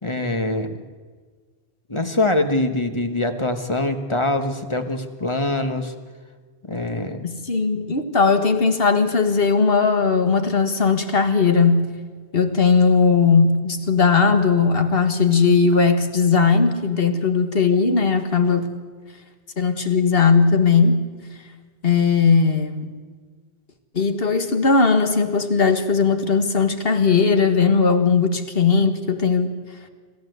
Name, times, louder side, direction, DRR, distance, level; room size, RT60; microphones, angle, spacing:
voice 1, 0.0-0.8 1.9-5.9 6.7-7.2, left 2 dB, 25° left, 7 dB, 1.4 m, -23 dB
voice 2, 7.2-11.8 12.3-18.7 19.6-21.1 21.8-22.9 23.9-29.6, left 5 dB, 60° left, 8 dB, 1.9 m, -18 dB
27.0 x 14.5 x 8.0 m, 1.5 s
omnidirectional pair, 1.1 m